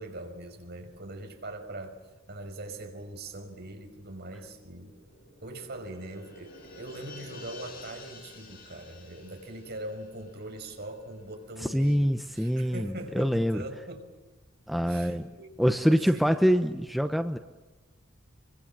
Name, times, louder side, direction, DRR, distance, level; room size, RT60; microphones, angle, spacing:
voice 1, 0.0-2.0 2.3-4.9 5.4-14.1 14.8-16.2, right 1 dB, 50° right, 4 dB, 5.5 m, -42 dB
sound 1, 4.7-11.5 11.8-11.9, left 2 dB, 45° left, 7.1 m, -50 dB
voice 2, 11.7-13.6 14.7-15.3 15.6-17.4, equal, ahead, 7 dB, 0.9 m, -25 dB
26.5 x 24.5 x 7.6 m, 1.2 s
head